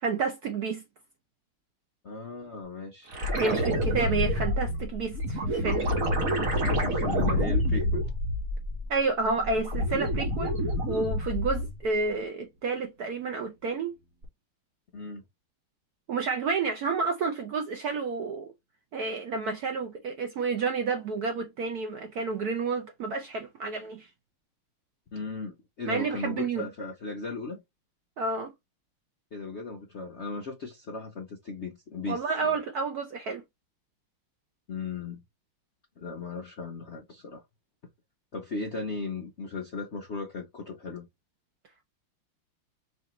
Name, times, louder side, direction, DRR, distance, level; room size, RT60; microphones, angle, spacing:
voice 1, 0.0-0.8 3.3-5.9 8.9-10.6 10.9-13.9 16.1-18.5 18.9-24.1 25.9-26.7 28.2-28.5 32.1-33.4, right 4 dB, 70° right, 0.9 m, -30 dB
voice 2, 2.0-3.1 6.6-8.1 14.9-15.2 25.1-27.6 29.3-32.5 34.7-35.2 36.0-37.4 38.3-41.1, left 3 dB, 60° left, 0.7 m, -37 dB
sound 1, 3.1-8.9 9.3-11.8 14.2-14.3, equal, 50° right, 1.3 m, -28 dB
4.9 x 2.7 x 3.0 m
omnidirectional pair, 2.3 m